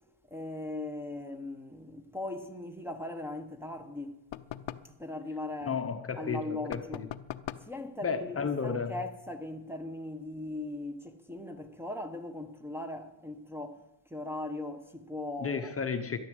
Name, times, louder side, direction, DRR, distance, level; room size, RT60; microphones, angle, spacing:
voice 1, 0.3-4.2 4.8-5.8 6.2-7.1 7.6-8.4 8.6-13.8 14.1-15.7, left 2 dB, 5° right, 1.0 m, -39 dB
sound 1, 4.3-5.0 6.7-7.8, left 12 dB, 65° left, 0.8 m, -40 dB
voice 2, 5.6-7.1 8.0-8.9 15.4-16.2, left 5 dB, 30° left, 0.9 m, -33 dB
13.0 x 11.0 x 7.9 m
cardioid pair, 160°, 49 cm